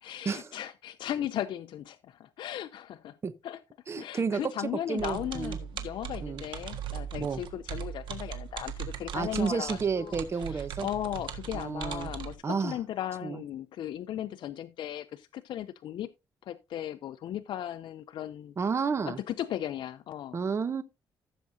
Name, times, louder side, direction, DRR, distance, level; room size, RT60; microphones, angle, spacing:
voice 1, 0.0-3.2 3.4-3.6 4.0-16.1 16.4-18.5 19.0-20.4, left 11 dB, 75° left, 0.5 m, -37 dB
voice 2, 3.9-4.5 4.9-5.6 6.2-6.4 7.2-7.4 9.1-10.9 11.5-12.1 12.4-12.8 13.2-13.4 18.6-19.2 20.3-20.8, right 5 dB, 35° right, 0.8 m, -31 dB
sound 1, 5.0-12.3, right 8 dB, 80° right, 1.6 m, -39 dB
15.0 x 7.2 x 2.7 m
cardioid pair, 115°, 8 cm